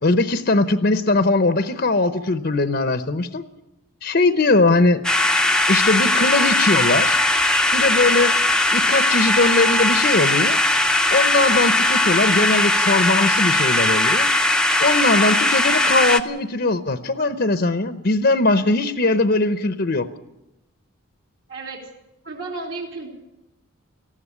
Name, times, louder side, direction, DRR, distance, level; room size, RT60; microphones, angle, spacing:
voice 1, 0.0-3.5 4.0-5.0 5.7-7.2 7.7-8.3 8.7-10.6 11.1-14.3 14.8-20.1, left 2 dB, 50° left, 10 dB, 0.8 m, -20 dB
sound 1, 5.0-16.2, left 2 dB, 5° left, 0.7 m, -19 dB
voice 2, 21.5-21.9 22.2-23.1, right 3 dB, 65° right, -2 dB, 3.5 m, -33 dB
18.5 x 15.0 x 9.7 m, 0.92 s
head